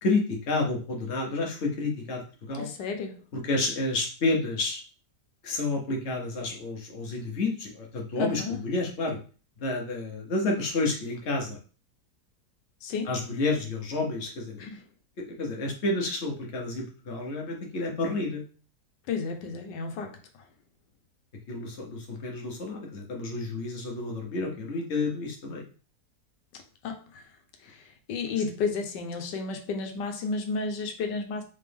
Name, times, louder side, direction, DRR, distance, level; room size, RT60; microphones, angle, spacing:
voice 1, 0.0-2.7 3.3-4.8 5.4-9.2 9.6-11.6 13.1-14.6 15.2-18.4 21.5-25.7, left 2 dB, 45° left, 1 dB, 1.1 m, -30 dB
voice 2, 2.5-3.2 8.2-8.6 12.8-13.1 14.6-14.8 19.1-20.2 26.8-27.2 27.6-31.4, left 4 dB, 90° left, 4 dB, 1.3 m, -32 dB
3.8 x 3.3 x 3.4 m, 0.37 s
omnidirectional pair, 1.8 m